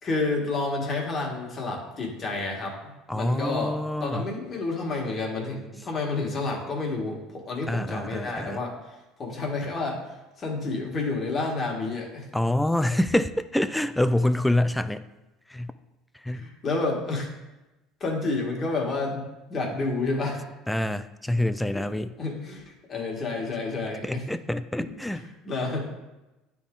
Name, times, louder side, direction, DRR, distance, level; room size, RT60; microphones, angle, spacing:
voice 1, 0.0-10.0 10.4-12.2 16.3-17.3 18.0-19.2 19.5-20.4 21.7-24.2 24.8-25.9, left 3 dB, 35° left, -1 dB, 1.7 m, -30 dB
voice 2, 3.1-4.3 7.7-8.6 12.3-15.1 15.5-15.7 16.2-16.4 20.7-22.1 24.0-25.2, left 1 dB, 5° left, 12 dB, 0.3 m, -26 dB
9.6 x 3.6 x 3.8 m, 1.0 s
supercardioid pair, 100°, 0 cm